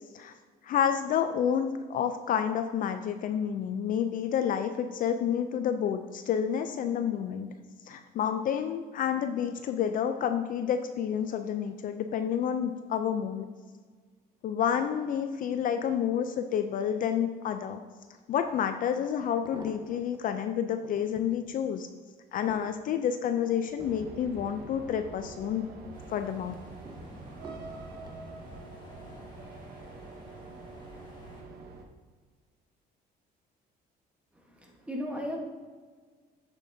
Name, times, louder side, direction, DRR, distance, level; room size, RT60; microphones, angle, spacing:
voice 1, 0.6-7.5 7.9-13.5 14.4-17.8 18.3-21.9 22.3-25.7 26.1-26.5, left 8 dB, 55° left, 8 dB, 0.4 m, -29 dB
sound 1, 18.5-18.6 19.2-20.2 20.7-21.4 21.9-25.3 25.7-26.2 26.9-28.2 29.0-29.3 29.6-29.7, right 3 dB, 25° right, 0.7 m, -50 dB
sound 2, 23.8-31.8, right 3 dB, 70° right, 0.9 m, -46 dB
sound 3, 25.9-31.4, left 1 dB, 25° left, 1.8 m, -51 dB
voice 2, 34.5-35.4, equal, 5° right, 0 dB, 1.2 m, -36 dB
7.5 x 6.9 x 2.7 m, 1.5 s
cardioid pair, 110°, 17 cm